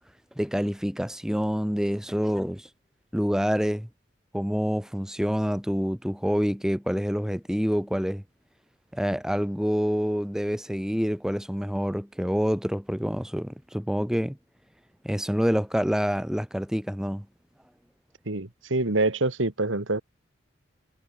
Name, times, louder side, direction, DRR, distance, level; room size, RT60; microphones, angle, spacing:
voice 1, 0.4-2.7 3.1-3.9 4.3-8.2 8.9-14.4 15.0-17.3, equal, 5° right, 1.1 m, -27 dB
voice 2, 18.3-20.0, right 2 dB, 85° right, 2.0 m, -26 dB
head